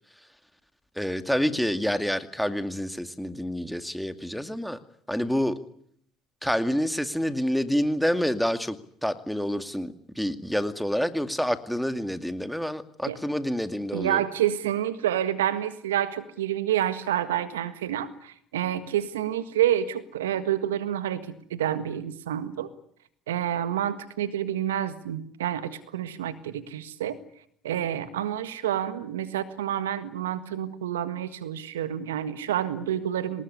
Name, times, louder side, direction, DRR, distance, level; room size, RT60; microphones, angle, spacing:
voice 1, 1.0-4.8 5.1-5.6 6.4-8.8 9.0-14.3, equal, ahead, 9 dB, 2.3 m, -28 dB
voice 2, 13.9-22.7 23.3-27.2 27.6-33.4, right 11 dB, 80° right, 13 dB, 1.7 m, -28 dB
26.0 x 19.5 x 9.9 m, 0.67 s
hypercardioid pair, 65°, 0 cm